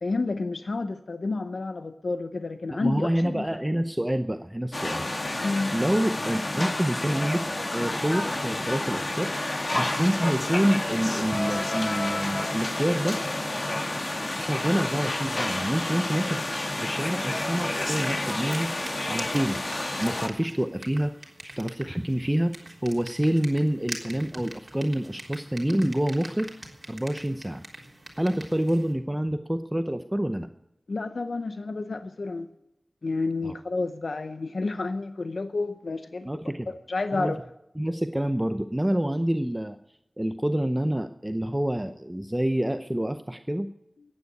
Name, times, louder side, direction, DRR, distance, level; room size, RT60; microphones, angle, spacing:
voice 1, 0.0-3.5 5.4-5.8 30.9-32.5 33.0-36.3 36.7-37.4, left 3 dB, 75° left, 10 dB, 0.7 m, -30 dB
voice 2, 2.7-5.1 5.4-7.4 7.7-13.2 14.1-18.7 19.1-19.6 20.0-26.5 26.9-27.6 28.2-30.5 33.4-33.5 36.2-36.7 37.1-37.3 37.8-39.8 40.2-43.7, right 1 dB, 10° right, 9 dB, 0.7 m, -27 dB
sound 1, 4.7-20.3, left 1 dB, 40° left, 1.7 m, -30 dB
sound 2, 17.8-28.9, right 1 dB, 35° right, 3.6 m, -44 dB
14.5 x 9.7 x 9.3 m, 0.89 s
wide cardioid pair, 80°, 0 cm